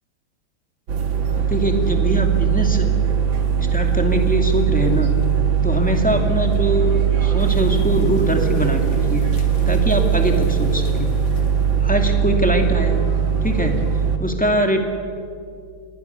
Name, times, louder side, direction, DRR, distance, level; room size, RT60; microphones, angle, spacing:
sound 1, 0.9-14.2, right 7 dB, 65° right, 2.2 m, -20 dB
voice 1, 1.3-2.9 3.7-5.1 5.6-8.8 9.1-9.2 9.7-11.1 11.8-13.1 13.4-13.8 14.2-14.8, equal, 5° left, 2 dB, 2.2 m, -22 dB
sound 2, 7.4-11.9, left 3 dB, 50° left, 2.3 m, -34 dB
27.5 x 21.0 x 6.9 m, 2.4 s
omnidirectional pair, 2.4 m